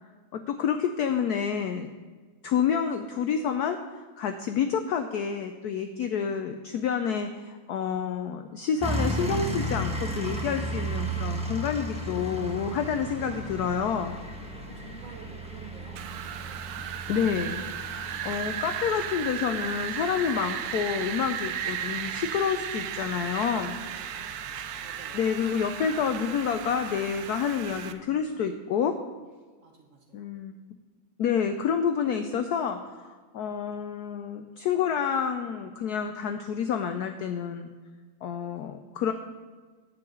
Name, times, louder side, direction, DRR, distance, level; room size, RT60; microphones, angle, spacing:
voice 1, 0.3-1.9 2.4-3.8 4.2-14.2 17.1-17.6 17.9-23.8 25.1-28.9 30.1-30.5 31.2-37.7 38.2-39.1, left 7 dB, 80° left, 7 dB, 0.9 m, -28 dB
sound 1, 8.8-28.0, right 1 dB, 5° right, 0.6 m, -36 dB
voice 2, 10.2-11.4 14.6-16.0 16.3-16.7 23.4-24.2 24.8-25.2 29.6-30.3, right 3 dB, 50° right, 1 dB, 1.2 m, -50 dB
Wind, 16.0-27.9, right 9 dB, 85° right, 0.8 m, -35 dB
9.4 x 4.7 x 7.7 m, 1.4 s
omnidirectional pair, 2.2 m